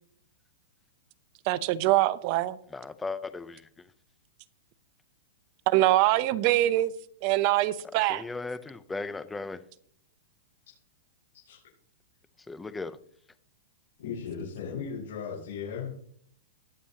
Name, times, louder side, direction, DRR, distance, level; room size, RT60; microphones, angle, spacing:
voice 1, 1.5-2.6 5.7-6.9 7.2-8.2, right 15 dB, 45° right, 0.7 m, -23 dB
voice 2, 2.7-3.9 8.1-9.6 12.4-13.0, left 3 dB, 10° left, 0.6 m, -37 dB
voice 3, 14.0-15.9, left 6 dB, 80° left, 5.3 m, -36 dB
21.0 x 7.3 x 2.9 m
hypercardioid pair, 140°, 0 cm